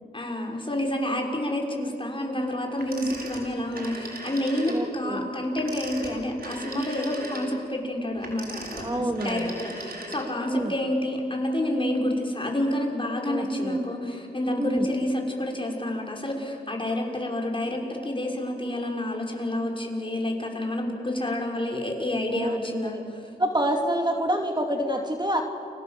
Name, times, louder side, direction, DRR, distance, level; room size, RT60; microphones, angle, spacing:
voice 1, 0.1-23.0, left 1 dB, 30° left, 0 dB, 6.3 m, -29 dB
Telephone, 2.8-4.9 5.5-10.5, right 2 dB, 65° right, 5.7 m, -39 dB
voice 2, 4.7-5.3 8.8-9.5 10.5-10.7 13.3-13.8 14.6-14.9 22.3-22.6 22.9-23.0 23.4-25.4, right 1 dB, 25° right, 3 dB, 2.8 m, -27 dB
30.0 x 25.0 x 7.8 m, 2.4 s
cardioid pair, 50°, 17 cm